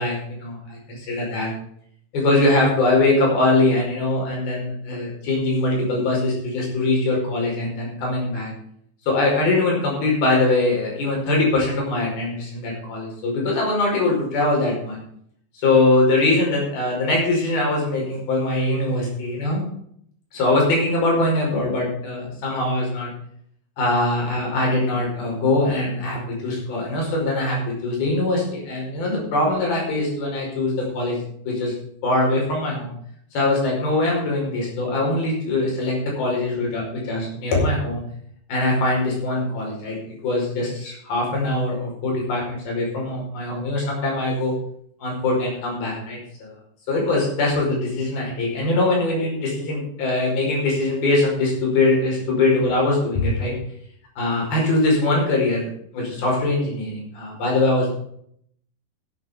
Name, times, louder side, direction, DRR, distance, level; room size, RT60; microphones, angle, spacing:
voice 1, 0.0-1.5 2.1-8.5 9.1-15.0 15.5-19.7 20.3-23.1 23.8-31.2 31.5-31.8 32.0-32.9 33.3-38.0 38.5-44.5 45.0-46.5 46.9-53.5 54.2-55.7 55.9-57.9, left 2 dB, 85° left, -2 dB, 7.3 m, -22 dB
14.5 x 8.7 x 5.1 m, 0.66 s
omnidirectional pair, 4.2 m